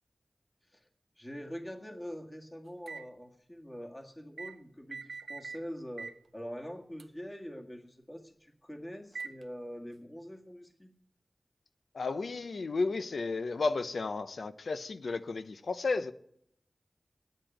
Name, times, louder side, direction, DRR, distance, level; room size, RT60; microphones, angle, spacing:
voice 1, 1.2-10.9, equal, 20° left, 1.8 m, -44 dB
sound 1, 2.9-3.1 4.4-4.6 4.9-5.6 6.0-6.2 7.0-7.1 9.2-9.4, right 4 dB, 85° right, 0.5 m, -42 dB
voice 2, 11.9-16.1, left 3 dB, 90° left, 0.7 m, -33 dB
9.8 x 8.9 x 8.9 m
wide cardioid pair, 65°, 0 cm